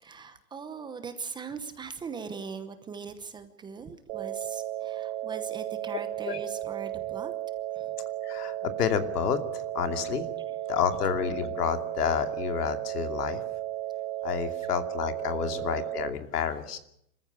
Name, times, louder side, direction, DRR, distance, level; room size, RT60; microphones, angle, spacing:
voice 1, 0.0-7.3 7.7-7.9, right 5 dB, 10° right, 10 dB, 0.9 m, -40 dB
sound 1, 4.1-16.1, right 13 dB, 35° right, 1.3 m, -34 dB
voice 2, 8.2-10.3 10.7-13.4 14.2-16.8, left 8 dB, 80° left, 8 dB, 2.8 m, -29 dB
26.5 x 14.5 x 8.4 m, 0.75 s
hypercardioid pair, 155°, 46 cm